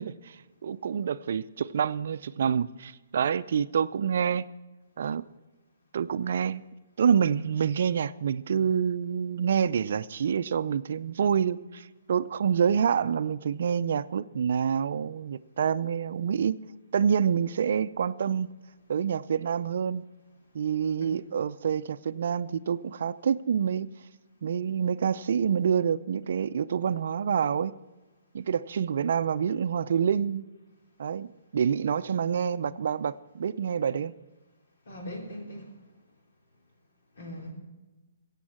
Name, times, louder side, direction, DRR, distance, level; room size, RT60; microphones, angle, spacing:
voice 1, 0.0-4.5 5.0-5.2 5.9-6.6 7.0-16.6 16.9-18.5 18.9-20.1 20.5-23.9 24.4-27.8 28.3-30.5 31.0-34.1, right 7 dB, 60° right, 0.5 m, -27 dB
voice 2, 34.9-35.7 37.2-37.5, equal, 65° left, 3.6 m, -40 dB
16.0 x 8.3 x 5.9 m
hypercardioid pair, 135°, 0 cm